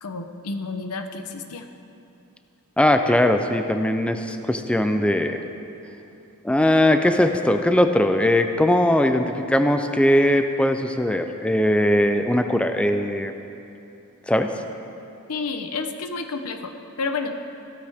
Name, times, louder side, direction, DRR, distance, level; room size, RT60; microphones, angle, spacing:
voice 1, 0.0-1.7 15.3-16.7 17.0-17.4, left 4 dB, 90° left, 6 dB, 0.8 m, -30 dB
voice 2, 2.8-5.4 6.4-13.3 14.3-14.5, left 1 dB, 5° left, 6 dB, 0.4 m, -20 dB
15.5 x 13.0 x 3.5 m, 2.7 s
head